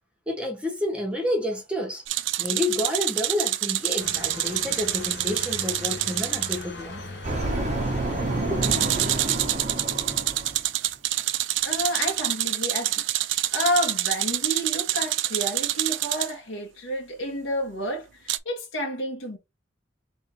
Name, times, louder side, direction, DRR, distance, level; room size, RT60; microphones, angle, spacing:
voice 1, 0.3-2.0 2.4-7.0 8.5-8.6 9.2-9.4, left 1 dB, 5° right, 1.4 m, -29 dB
sound 1, 2.1-6.6 8.6-16.3 18.3-18.4, right 14 dB, 70° right, 0.4 m, -27 dB
sound 2, 4.0-9.3, left 2 dB, 60° left, 1.4 m, -38 dB
sound 3, 7.2-10.7, right 2 dB, 35° right, 1.0 m, -28 dB
voice 2, 11.6-13.1 13.5-19.4, equal, 85° left, 1.4 m, -30 dB
3.7 x 3.4 x 2.8 m
head